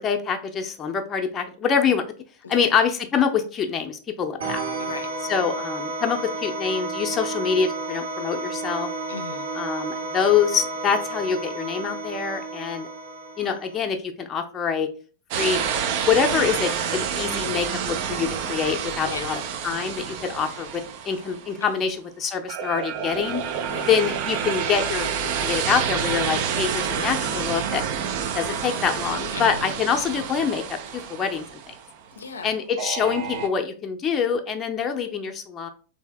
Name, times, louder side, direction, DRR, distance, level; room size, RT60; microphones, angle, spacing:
voice 1, 0.0-2.0 2.5-4.6 5.3-8.9 9.5-12.9 13.4-14.9 15.4-15.6 16.1-23.4 23.9-25.1 25.4-27.8 28.3-30.6 30.9-31.7 32.4-35.7, left 7 dB, 25° left, 4 dB, 0.6 m, -25 dB
sound 1, 4.4-13.8, right 3 dB, 85° right, 1.3 m, -32 dB
voice 2, 9.1-9.5 19.0-19.3 21.6-21.9 23.7-23.9 26.9-27.2 29.3-29.7 32.1-32.6, left 4 dB, 85° left, 6 dB, 0.4 m, -37 dB
sound 2, 15.3-21.7 22.5-31.9 32.8-33.5, right 7 dB, 55° right, 0.4 m, -28 dB
3.3 x 2.7 x 3.3 m, 0.40 s
hypercardioid pair, 100°, 0 cm